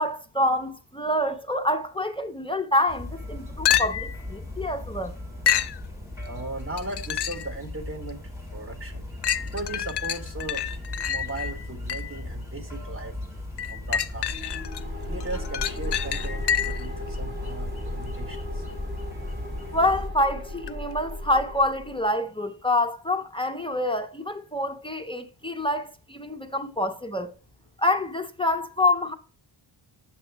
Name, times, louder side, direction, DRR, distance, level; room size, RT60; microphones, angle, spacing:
voice 1, 0.0-5.1 19.7-27.3 27.8-29.1, left 1 dB, 10° left, 0.5 m, -26 dB
sound 1, 2.9-20.1, left 1 dB, 5° right, 2.3 m, -38 dB
sound 2, 3.7-4.2 5.5-5.8 6.8-7.5 8.1-8.2 9.2-12.2 13.6-14.8 15.2-16.9 20.7-20.8, left 9 dB, 60° left, 0.5 m, -28 dB
voice 2, 6.3-8.2 8.5-9.1 9.5-10.7 11.0-13.2 13.7-14.3 15.1-18.6, right 2 dB, 25° right, 1.4 m, -37 dB
sound 3, 14.3-22.0, left 1 dB, 65° right, 3.3 m, -35 dB
8.9 x 7.1 x 3.3 m
wide cardioid pair, 170°, 47 cm